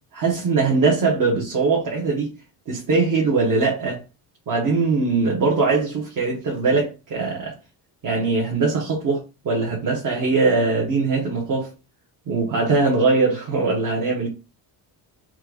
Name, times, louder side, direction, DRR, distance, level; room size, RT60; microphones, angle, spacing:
voice 1, 0.1-2.3 2.7-4.0 4.5-7.5 8.0-9.2 9.4-11.7 12.3-14.3, right 4 dB, 50° right, 1.3 m, -21 dB
4.4 x 2.5 x 4.7 m
cardioid pair, 175°, 41 cm